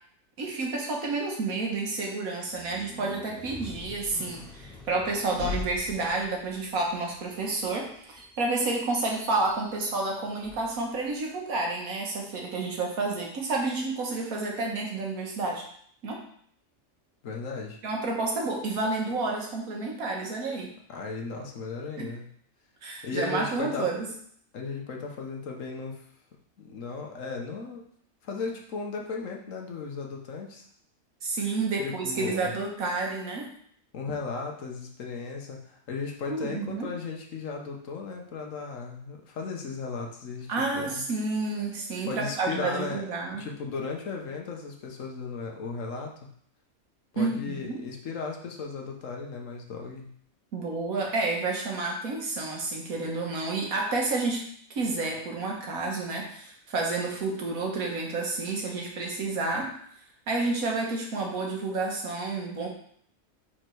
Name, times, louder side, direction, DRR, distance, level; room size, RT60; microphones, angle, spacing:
voice 1, 0.4-15.6 16.0-16.2 17.8-20.7 22.0-22.1 22.8-24.1 31.2-33.5 36.3-36.9 40.5-43.4 47.2-47.8 50.5-54.4 54.7-59.7 60.3-62.7, right 3 dB, 80° right, 0 dB, 1.7 m, -30 dB
sound 1, 2.5-11.2, left 3 dB, 45° left, 2.1 m, -43 dB
voice 2, 17.2-17.8 20.9-22.3 23.0-23.9 24.5-26.1 26.6-27.8 28.2-30.6 31.8-32.5 33.9-41.0 42.1-43.0 43.3-46.1 47.1-50.1, left 4 dB, 65° left, 1 dB, 1.3 m, -36 dB
4.8 x 4.5 x 4.5 m, 0.63 s
omnidirectional pair, 1.5 m